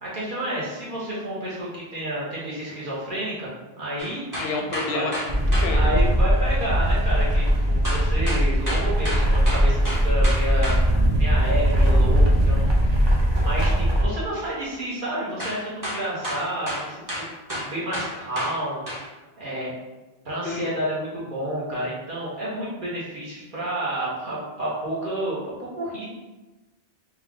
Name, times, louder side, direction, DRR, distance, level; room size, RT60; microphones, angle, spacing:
voice 1, 0.0-3.5 3.8-4.2 4.9-5.1 5.6-10.7 11.1-13.0 13.3-17.2 17.5-18.8 19.4-19.7 20.2-26.0, right 1 dB, 55° right, -7 dB, 1.3 m, -30 dB
sound 1, 4.0-5.7 7.8-10.8 15.4-15.6 15.8-18.6 18.9-19.0, equal, 20° right, 1.0 m, -30 dB
voice 2, 4.3-5.9 20.4-20.7, left 3 dB, 85° left, 2 dB, 0.9 m, -30 dB
sound 2, 5.3-14.0, equal, 35° right, 0.5 m, -20 dB
3.4 x 2.3 x 3.6 m, 1.1 s
omnidirectional pair, 1.0 m